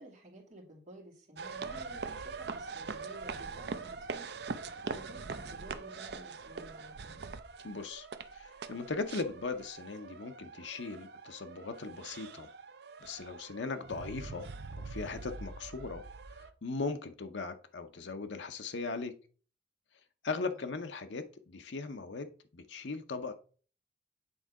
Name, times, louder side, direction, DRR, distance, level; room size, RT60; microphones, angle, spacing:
voice 1, 0.0-4.3 4.8-7.2 20.4-20.6, right 1 dB, 40° right, -2 dB, 2.5 m, -52 dB
sound 1, 1.4-16.5, right 4 dB, 60° right, 0.6 m, -43 dB
voice 2, 7.6-8.1 8.3-12.5 13.0-14.5 14.8-16.0 16.3-19.1 20.2-22.3 22.5-23.3, left 3 dB, 75° left, 7 dB, 0.7 m, -38 dB
8.8 x 3.7 x 4.7 m, 0.40 s
head